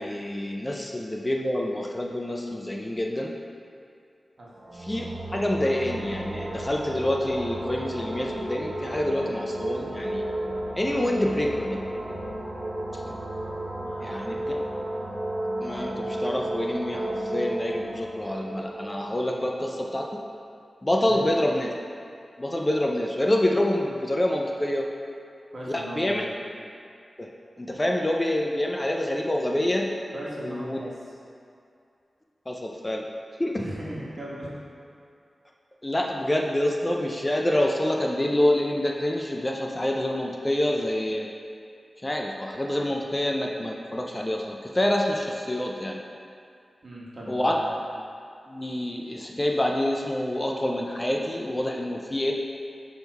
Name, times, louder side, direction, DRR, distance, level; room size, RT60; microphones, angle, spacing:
voice 1, 0.0-3.3 4.7-10.3 10.7-11.9 13.0-13.2 14.0-14.6 15.6-20.2 20.8-21.7 22.4-24.9 25.7-26.2 27.2-27.3 27.6-29.9 30.4-30.8 32.5-33.1 33.4-33.6 35.8-41.3 42.0-46.0 47.3-47.5 48.5-52.3, left 1 dB, 20° left, 0 dB, 0.4 m, -27 dB
sound 1, 4.5-20.1, right 1 dB, 35° right, 0.8 m, -33 dB
voice 2, 13.8-14.4 21.0-21.2 25.5-26.3 30.1-30.9 33.5-34.5 46.8-47.7, right 1 dB, 55° right, -6 dB, 1.4 m, -38 dB
6.2 x 3.6 x 4.5 m, 2.4 s
wide cardioid pair, 90°, 0 cm